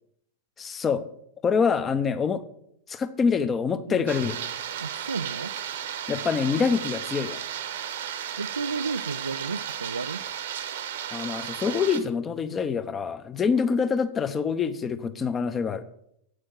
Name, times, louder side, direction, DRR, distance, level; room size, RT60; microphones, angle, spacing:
voice 1, 0.6-1.0 1.4-2.4 2.9-4.4 6.1-7.4 11.1-15.8, left 6 dB, 20° left, 0.8 m, -25 dB
sound 1, 4.1-12.0, right 9 dB, 60° right, 1.0 m, -34 dB
voice 2, 4.8-5.5 8.4-10.2, right 4 dB, 75° right, 0.3 m, -32 dB
8.6 x 6.5 x 7.6 m
figure-of-eight pair, 90°, 0 cm